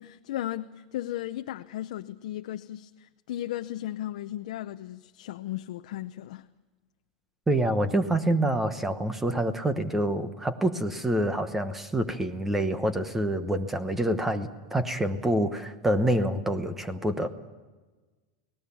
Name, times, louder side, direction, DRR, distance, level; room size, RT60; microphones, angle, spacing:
voice 1, 0.0-6.5, left 13 dB, 65° left, 0.7 m, -36 dB
voice 2, 7.5-17.3, right 1 dB, 5° right, 1.0 m, -27 dB
29.5 x 18.5 x 7.1 m
supercardioid pair, 170°, 4 cm